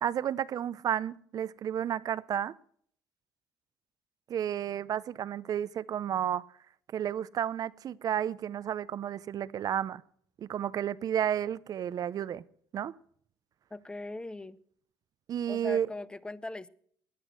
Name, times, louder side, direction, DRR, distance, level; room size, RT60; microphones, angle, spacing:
voice 1, 0.0-2.5 4.3-6.4 6.9-10.0 10.4-12.4 12.7-12.9 15.3-15.9, right 10 dB, 50° right, 0.6 m, -32 dB
voice 2, 13.7-14.6 15.5-16.7, left 2 dB, 10° left, 0.6 m, -40 dB
18.0 x 10.0 x 6.1 m
supercardioid pair, 90°, 8 cm